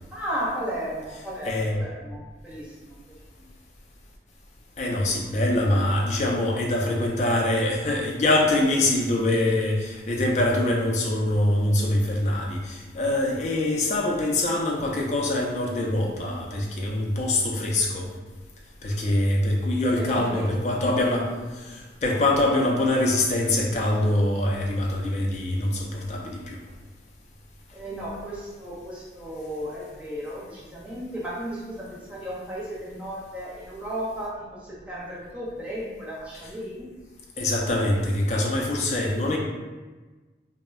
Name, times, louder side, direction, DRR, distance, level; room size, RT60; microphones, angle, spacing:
voice 1, 0.1-3.0 3.3-3.5 20.0-20.6 27.7-37.0, equal, 5° right, -8 dB, 0.6 m, -34 dB
voice 2, 1.4-1.8 4.8-18.1 18.8-26.6 37.4-39.4, left 1 dB, 40° left, -1 dB, 0.4 m, -24 dB
2.1 x 2.0 x 3.5 m, 1.3 s
head